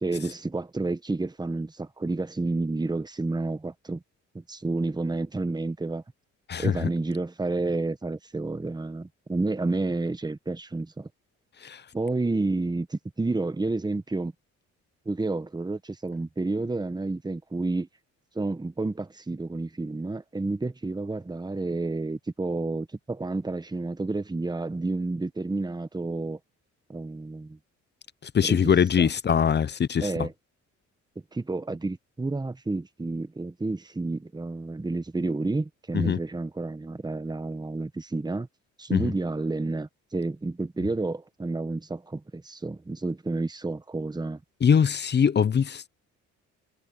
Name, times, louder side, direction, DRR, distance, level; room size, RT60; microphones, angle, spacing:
voice 1, 0.0-4.0 4.3-6.0 6.6-11.1 11.9-14.3 15.0-17.9 18.3-26.4 26.9-27.6 28.4-28.7 29.0-29.1 30.0-30.3 31.3-38.5 38.8-44.4, right 2 dB, 15° right, 1.3 m, -30 dB
voice 2, 6.5-6.9 11.6-11.8 28.2-30.3 35.9-36.2 38.9-39.1 44.6-45.9, left 7 dB, 35° left, 0.7 m, -22 dB
cardioid pair, 90°, 30 cm